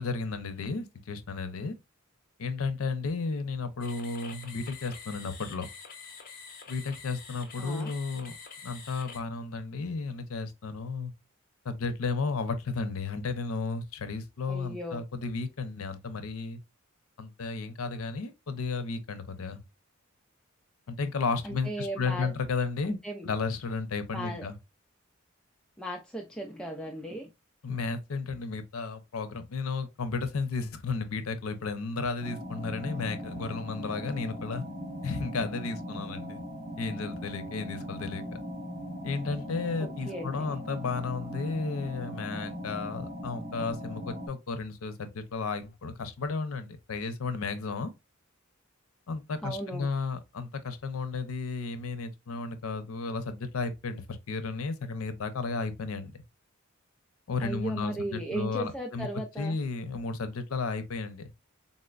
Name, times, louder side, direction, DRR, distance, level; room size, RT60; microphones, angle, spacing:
voice 1, 0.0-1.7 2.4-5.7 6.7-8.3 8.6-11.1 11.6-16.6 17.2-19.6 20.9-23.0 23.2-24.6 27.6-34.6 35.0-36.4 36.8-38.2 39.0-47.9 49.1-56.2 57.3-59.1 59.4-61.3, left 4 dB, 80° left, 0.6 m, -33 dB
sound 1, 3.8-9.2, left 5 dB, 45° left, 0.7 m, -46 dB
voice 2, 7.6-7.9 14.5-15.0 21.4-22.3 22.8-23.3 24.1-24.5 25.8-27.3 39.8-40.5 49.4-49.9 57.4-59.6, right 1 dB, 5° left, 0.3 m, -36 dB
sound 2, 32.2-44.3, equal, 60° right, 1.3 m, -39 dB
3.9 x 2.1 x 2.3 m
head